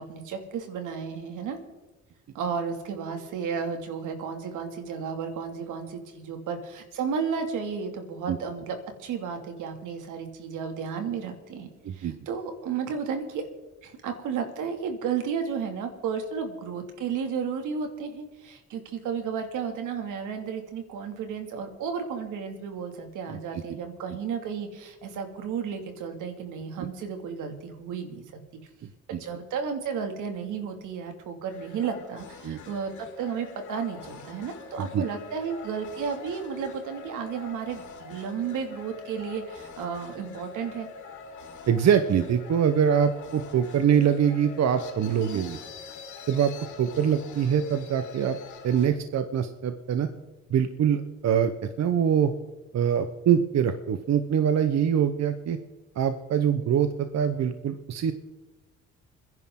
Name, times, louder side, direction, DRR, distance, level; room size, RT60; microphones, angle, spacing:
voice 1, 0.0-1.6 2.3-13.4 13.8-28.2 29.1-32.9 33.2-40.9 45.3-45.4, right 6 dB, 90° right, 5 dB, 2.6 m, -33 dB
voice 2, 11.8-12.1 23.3-23.6 26.8-26.9 29.1-29.2 32.4-32.6 34.8-35.0 41.7-45.6 46.3-46.5 46.8-48.4 48.6-50.1 50.5-51.5 51.8-52.3 52.7-55.6 56.0-58.1, right 8 dB, 60° right, 9 dB, 1.1 m, -24 dB
sound 1, 31.5-48.9, left 4 dB, 75° left, 3.9 m, -44 dB
28.0 x 11.0 x 3.9 m, 1.2 s
cardioid pair, 90°, 30 cm